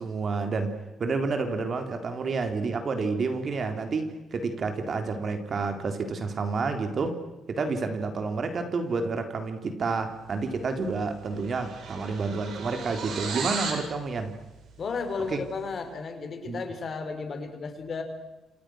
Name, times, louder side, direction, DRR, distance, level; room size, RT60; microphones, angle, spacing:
voice 1, 0.0-7.2 7.5-14.3 15.3-15.4 16.5-16.6, right 4 dB, 45° right, 6 dB, 4.0 m, -29 dB
sound 1, 10.7-10.9 11.2-13.9, right 5 dB, 70° right, 7.5 m, -35 dB
voice 2, 14.8-18.0, left 4 dB, 50° left, 7 dB, 5.1 m, -33 dB
29.5 x 27.0 x 6.6 m, 1.0 s
cardioid pair, 90°, 0 cm